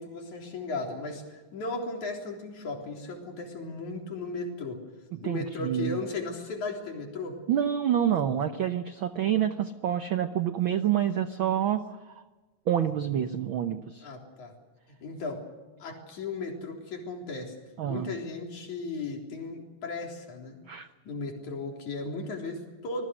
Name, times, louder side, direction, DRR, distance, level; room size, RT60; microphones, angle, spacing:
voice 1, 0.0-4.8 5.2-7.4 14.0-14.5 15.0-15.4 15.8-17.6 17.9-20.6 21.0-23.1, left 3 dB, 70° left, 1 dB, 5.1 m, -36 dB
voice 2, 5.2-6.0 7.5-12.2 12.7-14.1 17.8-18.1 20.7-20.9, right 10 dB, 85° right, 9 dB, 1.1 m, -27 dB
26.5 x 20.5 x 6.4 m, 1.3 s
omnidirectional pair, 3.5 m